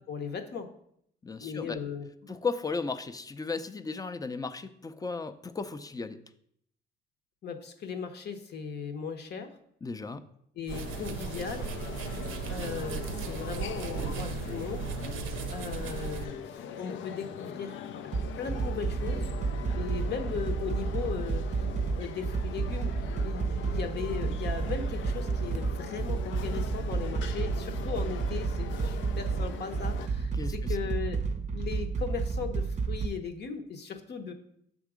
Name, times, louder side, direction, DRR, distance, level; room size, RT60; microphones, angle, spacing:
voice 1, 0.1-0.7 1.4-2.3 7.4-9.5 10.6-11.7 12.5-14.9 15.5-17.8 18.4-19.3 19.7-21.4 22.0-22.9 23.2-34.3, left 6 dB, 60° left, 6 dB, 0.9 m, -37 dB
voice 2, 1.2-1.8 2.3-6.2 9.8-10.2 30.3-30.8, left 4 dB, 20° left, 10 dB, 0.5 m, -35 dB
sound 1, 10.7-30.1, left 8 dB, 75° left, 0.5 m, -42 dB
sound 2, 10.7-16.3, right 6 dB, 90° right, 0.5 m, -36 dB
sound 3, 18.1-33.1, right 4 dB, 35° right, 0.6 m, -31 dB
6.9 x 3.7 x 4.9 m, 0.70 s
cardioid pair, 90°, 20 cm